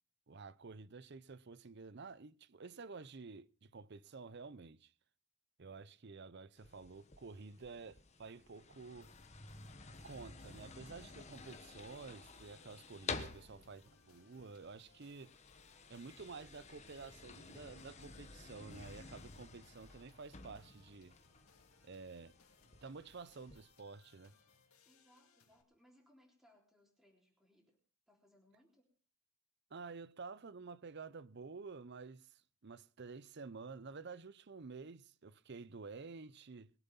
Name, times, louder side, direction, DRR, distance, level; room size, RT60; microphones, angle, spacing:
voice 1, 0.3-4.9 5.6-9.1 10.0-15.3 15.9-21.2 21.8-22.3 22.8-24.3 29.7-36.7, right 4 dB, 50° right, 0.6 m, -51 dB
sound 1, 6.6-23.6, left 4 dB, 30° left, 1.3 m, -52 dB
sound 2, 9.0-25.6, left 5 dB, 85° left, 2.5 m, -70 dB
voice 2, 13.3-13.7 24.9-27.8 28.1-28.9, left 1 dB, ahead, 3.6 m, -69 dB
22.0 x 8.1 x 5.5 m
head